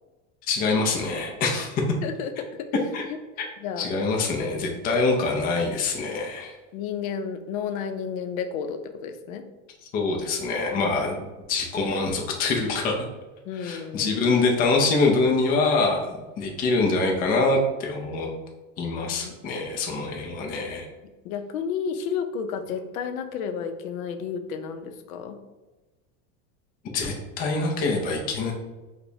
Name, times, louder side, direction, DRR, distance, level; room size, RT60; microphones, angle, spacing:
voice 1, 0.5-1.8 2.9-3.0 3.4-3.5 3.8-6.6 9.8-11.2 11.5-13.1 13.6-18.3 18.8-20.9 26.9-28.5, left 3 dB, 25° left, 0 dB, 0.4 m, -25 dB
voice 2, 2.0-2.3 3.1-3.2 3.6-3.9 4.2-4.7 6.2-6.3 6.7-9.5 13.5-14.2 19.1-19.3 21.2-25.4, left 7 dB, 85° left, 7 dB, 0.6 m, -32 dB
4.7 x 2.2 x 2.6 m, 1.2 s
supercardioid pair, 150°, 41 cm